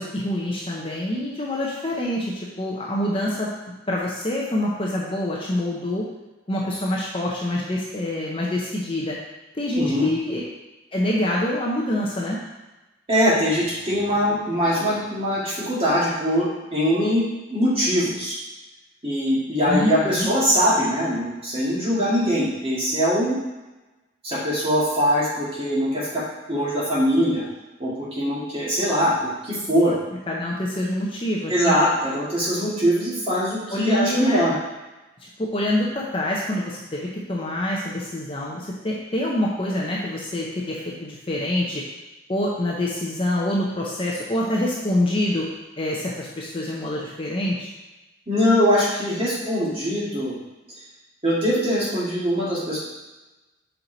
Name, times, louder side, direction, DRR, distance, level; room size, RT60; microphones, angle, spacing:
voice 1, 0.0-3.5 3.9-6.1 6.5-9.2 9.6-10.4 10.9-12.4 19.7-20.3 30.3-31.7 33.7-34.4 35.4-41.8 42.3-45.5 45.8-47.7, left 1 dB, 25° left, -4 dB, 0.7 m, -26 dB
voice 2, 9.8-10.1 13.1-17.2 17.5-18.4 19.0-23.4 24.2-26.2 26.5-27.4 27.8-29.9 31.5-34.5 48.3-50.4 51.2-52.8, equal, 30° right, -8 dB, 2.0 m, -22 dB
5.6 x 4.5 x 3.9 m, 1.1 s
head